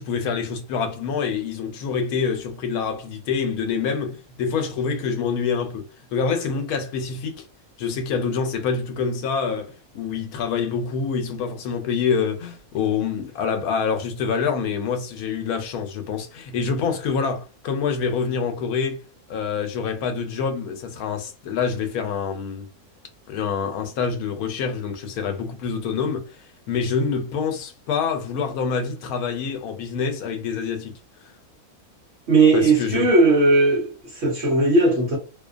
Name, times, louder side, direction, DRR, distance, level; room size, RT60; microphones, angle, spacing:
voice 1, 0.0-5.8 6.1-7.4 7.8-19.0 19.3-22.7 23.3-31.0 32.5-33.1, left 6 dB, 80° left, 1.1 m, -26 dB
voice 2, 32.3-35.2, right 2 dB, 55° right, 0.9 m, -18 dB
2.7 x 2.2 x 2.4 m
omnidirectional pair, 1.6 m